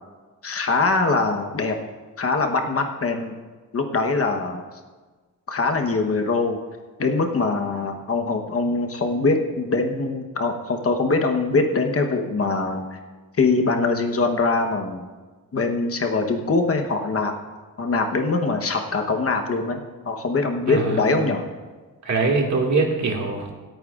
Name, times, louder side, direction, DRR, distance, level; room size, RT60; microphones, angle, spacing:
voice 1, 0.4-1.7 2.2-3.3 3.7-4.6 5.5-6.6 7.0-13.0 13.4-15.0 15.5-17.4 17.8-21.5, left 3 dB, 40° left, 4 dB, 1.0 m, -23 dB
voice 2, 20.7-21.2 22.0-23.5, right 3 dB, 50° right, 0 dB, 2.0 m, -23 dB
26.5 x 9.0 x 2.4 m, 1.3 s
wide cardioid pair, 160°, 35 cm